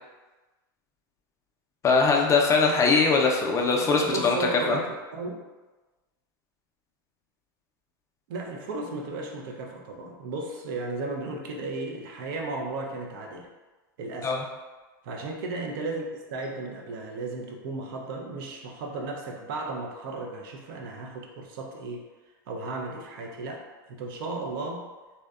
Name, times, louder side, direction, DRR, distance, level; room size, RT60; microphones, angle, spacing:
voice 1, 1.8-4.4 4.7-4.8 14.2-14.4, left 4 dB, 25° left, 0 dB, 0.3 m, -21 dB
voice 2, 3.8-5.4 8.3-13.5 14.0-14.4 15.0-22.0 22.5-24.9, right 3 dB, 70° right, 1 dB, 0.5 m, -35 dB
2.7 x 2.1 x 2.3 m, 1.2 s
hypercardioid pair, 110°, 12 cm